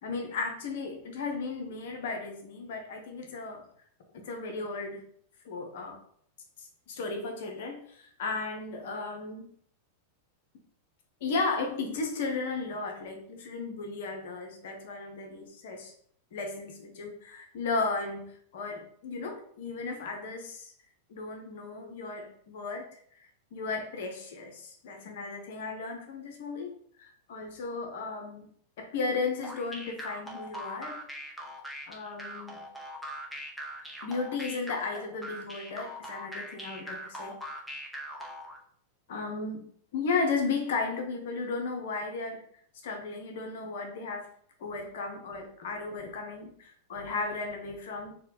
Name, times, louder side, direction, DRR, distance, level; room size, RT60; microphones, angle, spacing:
voice 1, 0.0-3.6 4.1-5.0 5.4-6.0 6.6-9.5 11.2-15.9 16.3-20.7 21.1-22.9 23.5-28.5 28.8-31.0 31.9-32.6 34.0-37.3 39.1-39.7 39.9-42.4 42.8-44.3 44.6-48.2, left 4 dB, 55° left, 3 dB, 0.8 m, -35 dB
sound 1, 29.4-38.6, equal, ahead, 0.7 m, -41 dB
4.2 x 2.2 x 3.9 m, 0.63 s
figure-of-eight pair, 90°, 0 cm